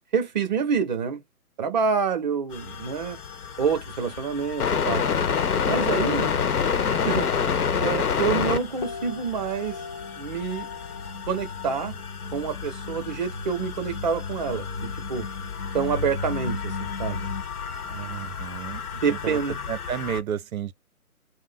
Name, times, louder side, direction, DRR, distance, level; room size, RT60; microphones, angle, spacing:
voice 1, 0.1-1.2 1.6-3.2 3.6-5.0 5.7-6.3 7.0-9.8 10.2-10.7 11.3-11.9 12.3-15.3 15.7-17.3 17.9-18.3 18.9-19.6, right 6 dB, 30° right, 0.7 m, -27 dB
sound 1, 2.5-20.2, left 7 dB, 70° left, 0.9 m, -29 dB
sound 2, 8.8-17.4, left 4 dB, 30° left, 0.5 m, -36 dB
voice 2, 18.1-18.8 19.1-19.4 19.7-20.7, right 9 dB, 65° right, 0.6 m, -31 dB
2.5 x 2.0 x 3.7 m
hypercardioid pair, 145°, 45 cm